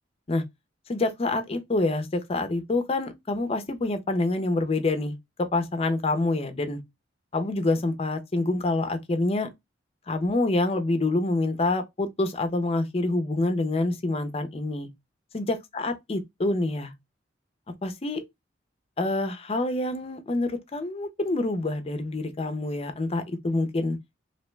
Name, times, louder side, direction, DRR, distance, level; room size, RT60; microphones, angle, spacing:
voice 1, 0.9-6.8 7.3-9.5 10.1-14.9 15.3-16.9 17.8-18.2 19.0-24.0, left 2 dB, 30° left, 0.5 m, -27 dB
2.7 x 2.1 x 3.1 m
head